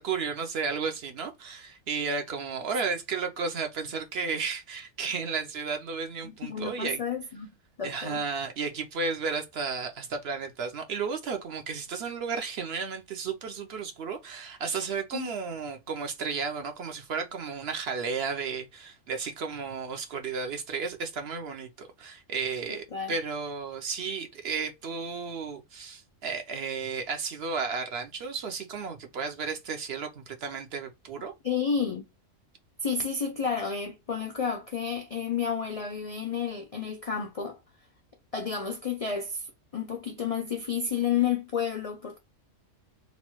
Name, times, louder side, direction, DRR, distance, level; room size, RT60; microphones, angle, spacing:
voice 1, 0.0-7.0 7.8-31.3, right 5 dB, 60° right, 0.8 m, -33 dB
voice 2, 6.2-7.5 7.8-8.2 15.1-15.3 22.7-23.1 31.4-32.1 32.8-37.6 38.3-39.5 39.7-42.2, left 6 dB, 65° left, 0.3 m, -31 dB
3.0 x 2.2 x 2.9 m
omnidirectional pair, 1.3 m